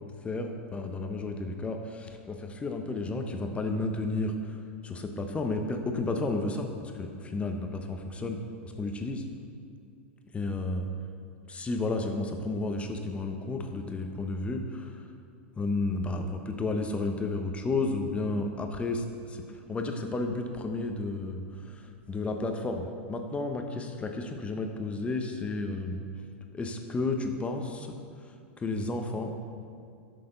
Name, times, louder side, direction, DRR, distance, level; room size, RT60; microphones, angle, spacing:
voice 1, 0.2-8.4 8.8-9.2 10.3-10.9 11.5-15.0 15.6-26.0 26.5-28.0 28.6-29.4, left 2 dB, 20° left, 4 dB, 1.0 m, -32 dB
11.5 x 6.8 x 3.9 m, 2.4 s
hypercardioid pair, 100°, 7 cm